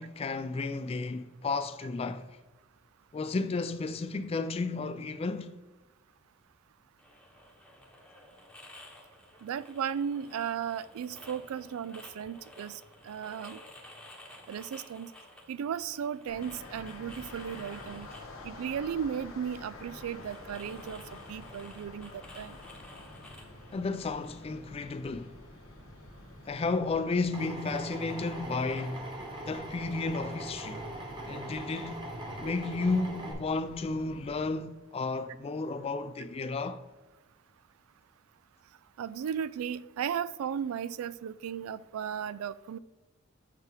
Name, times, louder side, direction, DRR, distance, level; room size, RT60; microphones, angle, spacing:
voice 1, 0.0-2.3 3.1-5.5 23.7-25.3 26.5-29.1 29.5-30.9 31.3-32.1 32.4-36.8, left 3 dB, 30° left, 0.3 m, -33 dB
sound 1, 7.0-24.5, left 1 dB, 5° left, 1.0 m, -53 dB
voice 2, 9.4-13.6 14.5-15.1 15.5-18.1 18.4-22.6 39.0-42.8, right 8 dB, 85° right, 0.3 m, -35 dB
sound 2, 16.3-34.5, left 2 dB, 75° left, 1.3 m, -49 dB
Drill, 27.3-33.3, right 1 dB, 25° right, 1.0 m, -41 dB
6.6 x 5.9 x 3.4 m
head